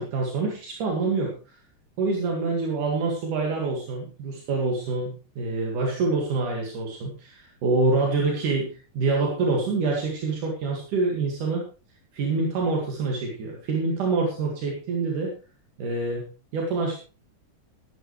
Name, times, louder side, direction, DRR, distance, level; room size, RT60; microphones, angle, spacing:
voice 1, 0.0-1.4 2.0-11.6 12.1-15.3 15.8-16.3 16.5-17.0, right 3 dB, 80° right, -1 dB, 3.6 m, -26 dB
16.0 x 11.0 x 3.2 m, 0.35 s
omnidirectional pair, 3.6 m